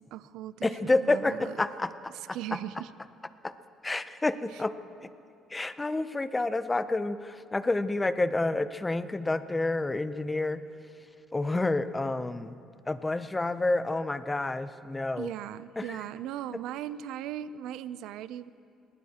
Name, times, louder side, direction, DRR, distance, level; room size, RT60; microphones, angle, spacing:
voice 1, 0.0-1.5 2.1-2.9 4.5-4.6 15.2-18.5, right 11 dB, 80° right, 16 dB, 0.4 m, -38 dB
voice 2, 0.6-2.4 3.4-3.5 3.8-4.8 5.5-10.6 11.3-12.5 12.9-15.3 15.8-15.9, left 2 dB, 15° left, 12 dB, 0.5 m, -29 dB
21.0 x 19.5 x 2.9 m, 2.6 s
cardioid pair, 120°, 0 cm